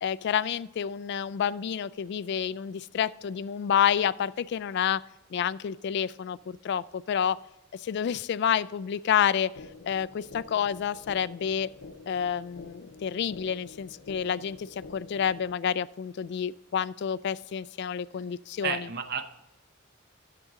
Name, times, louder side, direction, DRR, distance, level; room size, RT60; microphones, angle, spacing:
voice 1, 0.0-5.0 5.3-7.4 7.7-9.5 9.9-11.7 12.1-18.9, left 8 dB, 55° left, 17 dB, 0.3 m, -29 dB
sound 1, 9.6-15.6, left 3 dB, 80° left, 0.7 m, -48 dB
voice 2, 18.6-19.3, right 7 dB, 55° right, 10 dB, 0.7 m, -32 dB
11.0 x 7.7 x 3.7 m, 0.90 s
head